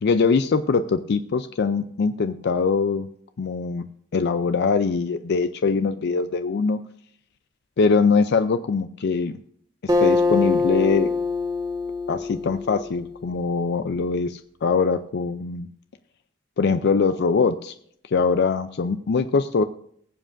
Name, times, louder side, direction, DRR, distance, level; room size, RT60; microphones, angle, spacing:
voice 1, 0.0-3.1 3.4-3.9 4.1-6.8 7.8-9.3 9.8-11.1 12.1-15.7 16.6-17.7 18.0-19.7, left 4 dB, 55° left, 10 dB, 0.4 m, -22 dB
Acoustic guitar, 9.9-13.5, left 3 dB, 20° right, 1.7 m, -24 dB
20.0 x 7.5 x 2.5 m, 0.66 s
head